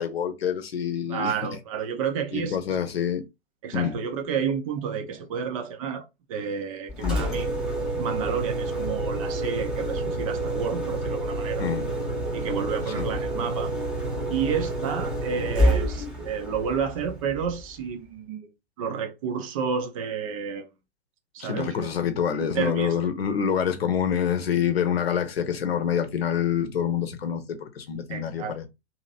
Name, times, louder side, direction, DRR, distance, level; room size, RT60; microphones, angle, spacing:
voice 1, 0.0-1.3 2.3-3.2 3.7-4.0 7.0-7.3 11.6-11.9 13.0-13.1 21.4-28.7, left 8 dB, 60° left, 0.8 m, -26 dB
voice 2, 1.1-2.8 3.6-7.5 8.0-11.7 12.3-13.7 14.3-18.5 18.8-20.7 21.3-21.9 22.5-22.9 28.1-28.5, right 7 dB, 30° right, 0.5 m, -30 dB
Engine, 6.9-17.8, right 1 dB, ahead, 0.9 m, -28 dB
2.8 x 2.7 x 2.7 m
figure-of-eight pair, 110°, 34 cm